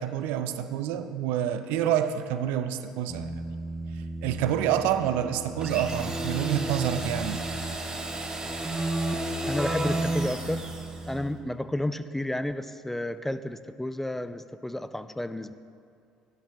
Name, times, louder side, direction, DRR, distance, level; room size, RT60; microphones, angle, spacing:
voice 1, 0.0-3.3 4.2-7.4, right 10 dB, 70° right, 11 dB, 0.4 m, -27 dB
Keyboard (musical), 3.1-11.5, right 1 dB, 5° right, 1.0 m, -33 dB
sound 1, 5.6-11.2, right 2 dB, 25° right, 1.4 m, -37 dB
voice 2, 9.5-10.6 11.1-15.5, left 1 dB, 10° left, 12 dB, 0.4 m, -31 dB
11.5 x 11.5 x 2.3 m, 2.4 s
hypercardioid pair, 60°, 3 cm